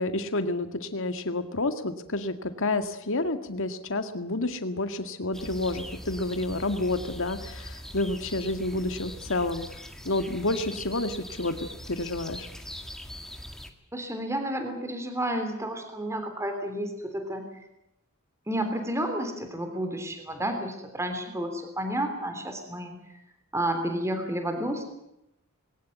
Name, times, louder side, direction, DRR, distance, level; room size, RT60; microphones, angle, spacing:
voice 1, 0.0-9.7 10.0-12.5, left 2 dB, 60° left, 9 dB, 2.0 m, -29 dB
sound 1, 5.3-13.7, equal, ahead, 2.0 m, -41 dB
voice 2, 13.9-17.5 18.5-23.2 23.5-24.9, right 1 dB, 15° right, 6 dB, 3.3 m, -31 dB
21.5 x 19.0 x 9.3 m, 0.84 s
head